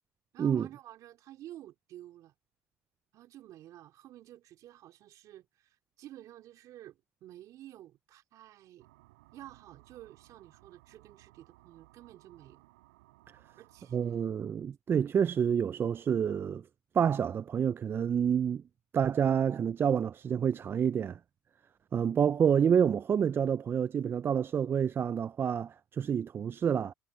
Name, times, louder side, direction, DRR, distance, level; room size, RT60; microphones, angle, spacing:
voice 1, 0.3-2.3 3.1-8.9 9.3-12.6 13.6-14.3, right 13 dB, 60° right, 3.0 m, -51 dB
sound 1, 8.8-14.3, right 21 dB, 90° right, 4.3 m, -61 dB
voice 2, 13.9-16.6 16.9-18.6 18.9-21.2 21.9-26.9, right 8 dB, 35° right, 0.4 m, -28 dB
supercardioid pair, 75°, 6 cm